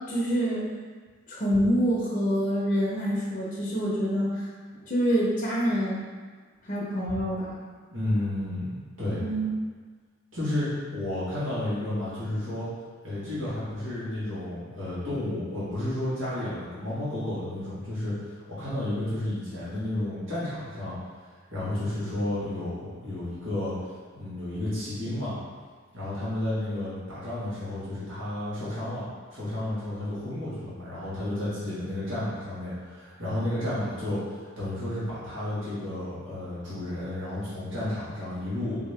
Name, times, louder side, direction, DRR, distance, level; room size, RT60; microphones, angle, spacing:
voice 1, 0.1-0.7 1.3-4.5 4.9-6.0 6.6-7.6 9.1-9.5, equal, 40° left, -7 dB, 0.7 m, -26 dB
voice 2, 7.9-8.7 9.0-9.2 10.3-12.7 13.0-20.9 21.5-23.7 24.1-25.3 25.9-38.8, left 1 dB, 80° right, -11 dB, 1.5 m, -32 dB
4.1 x 2.8 x 3.2 m, 1.5 s
head